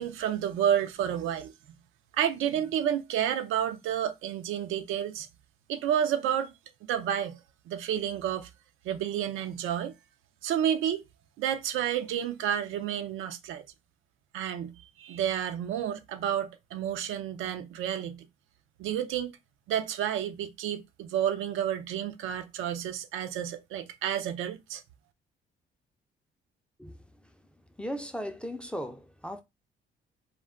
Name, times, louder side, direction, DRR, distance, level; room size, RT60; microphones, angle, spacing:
voice 1, 0.0-1.5 2.1-5.3 5.7-6.5 6.9-7.4 7.7-8.5 8.8-9.9 10.4-11.0 11.4-13.6 14.3-18.3 18.8-19.3 19.7-24.8, right 10 dB, 85° right, 0.5 m, -30 dB
voice 2, 27.8-29.4, equal, 5° left, 0.4 m, -37 dB
2.2 x 2.2 x 3.5 m
cardioid pair, 90°, 20 cm